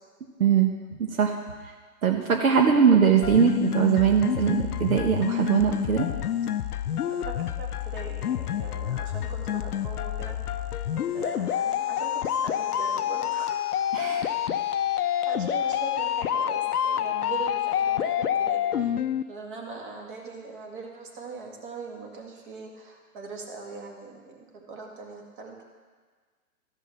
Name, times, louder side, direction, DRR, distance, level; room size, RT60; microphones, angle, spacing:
voice 1, 0.4-0.7 1.0-1.4 2.0-6.1 13.9-14.6, right 7 dB, 70° right, 3 dB, 1.2 m, -21 dB
sound 1, 3.2-19.2, left 10 dB, 85° left, 0.6 m, -28 dB
voice 2, 7.1-10.7 11.1-13.6 15.3-18.9 19.3-25.6, right 4 dB, 35° right, 1 dB, 2.0 m, -41 dB
14.0 x 5.6 x 7.6 m, 1.5 s
hypercardioid pair, 155°, 44 cm